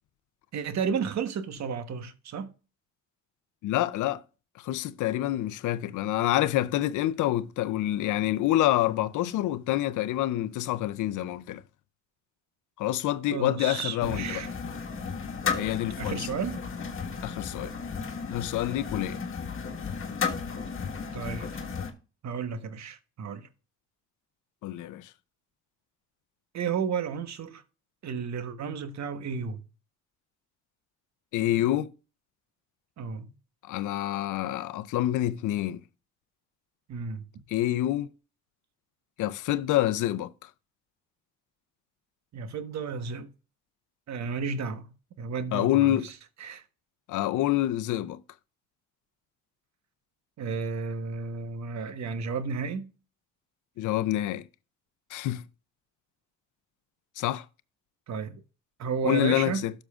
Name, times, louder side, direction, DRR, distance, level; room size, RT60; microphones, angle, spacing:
voice 1, 0.5-2.5 13.3-14.5 16.0-16.6 21.1-21.5 22.2-23.5 26.5-27.6 28.0-29.6 33.0-33.3 36.9-37.4 42.3-43.3 44.1-46.1 46.4-46.6 50.4-52.9 58.1-58.4 58.8-59.7, right 6 dB, 65° right, 1.2 m, -32 dB
voice 2, 3.6-4.2 4.6-11.6 12.8-14.4 15.6-16.3 17.2-17.7 18.3-19.2 24.6-25.1 31.3-31.9 33.7-35.8 37.5-38.1 39.2-40.3 45.5-46.1 47.1-48.2 53.8-54.4 55.1-55.4 57.2-57.4 59.0-59.7, left 14 dB, 80° left, 0.6 m, -27 dB
sound 1, 14.0-21.9, left 5 dB, 45° left, 1.6 m, -34 dB
12.5 x 6.5 x 2.4 m
cardioid pair, 90°, 30 cm